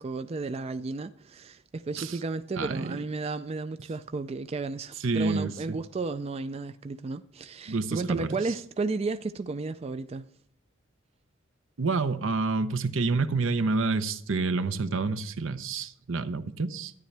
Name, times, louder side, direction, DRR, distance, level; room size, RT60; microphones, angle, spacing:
voice 1, 0.0-10.3, right 3 dB, 30° right, 0.3 m, -33 dB
voice 2, 2.6-3.0 5.0-5.8 7.7-8.4 11.8-16.9, right 3 dB, 75° right, 0.8 m, -28 dB
13.0 x 10.0 x 3.4 m
head